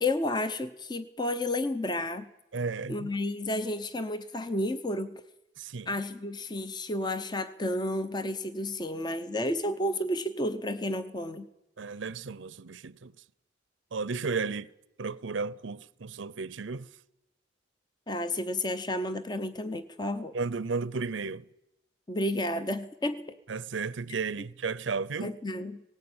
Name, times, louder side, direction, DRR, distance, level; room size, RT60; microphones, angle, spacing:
voice 1, 0.0-2.3 2.9-5.2 5.9-11.5 18.1-20.3 22.1-23.4 25.2-25.8, left 1 dB, 25° left, 0.8 m, -31 dB
voice 2, 2.5-3.1 5.6-5.9 11.8-13.1 13.9-14.7 15.0-16.9 20.3-21.5 23.5-25.4, right 4 dB, 90° right, 0.7 m, -34 dB
18.5 x 18.0 x 8.8 m
head